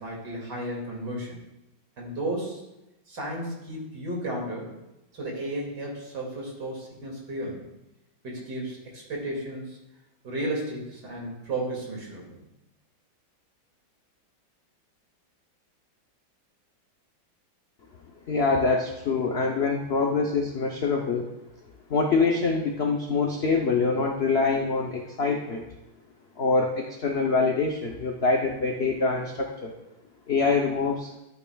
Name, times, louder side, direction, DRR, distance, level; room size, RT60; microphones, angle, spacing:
voice 1, 0.0-1.4 2.0-2.6 3.1-4.8 5.1-7.7 8.2-9.8 10.2-12.5, right 1 dB, 60° right, -2 dB, 2.9 m, -33 dB
voice 2, 18.3-21.3 21.9-25.6 26.4-29.7 30.3-31.1, left 4 dB, 65° left, 1 dB, 0.6 m, -25 dB
13.5 x 8.7 x 2.3 m, 0.94 s
omnidirectional pair, 2.1 m